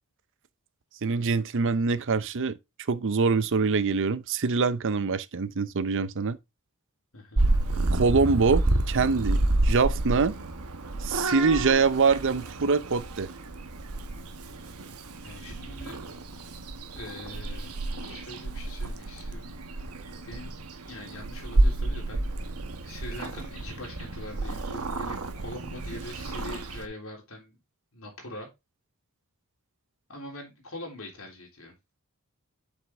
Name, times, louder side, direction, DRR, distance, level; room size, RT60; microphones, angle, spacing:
voice 1, 1.0-2.6 2.9-6.4 7.9-10.3 11.0-13.3, right 4 dB, 60° right, 0.6 m, -24 dB
voice 2, 7.1-7.6 15.2-16.0 17.0-20.5 20.9-22.3 22.8-27.6 27.9-28.5 30.1-31.7, left 1 dB, 65° left, 3.5 m, -43 dB
Purr / Meow, 7.4-26.9, right 2 dB, 80° right, 1.1 m, -30 dB
7.5 x 5.8 x 3.5 m
head